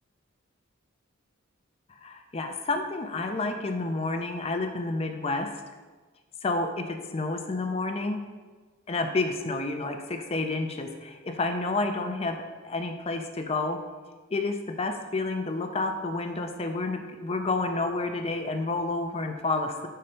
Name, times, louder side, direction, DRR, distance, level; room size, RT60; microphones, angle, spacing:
voice 1, 2.0-5.5 6.4-8.2 8.9-12.4 12.6-13.8 14.3-19.9, left 3 dB, 30° left, 5 dB, 0.5 m, -30 dB
5.6 x 4.4 x 5.1 m, 1.3 s
head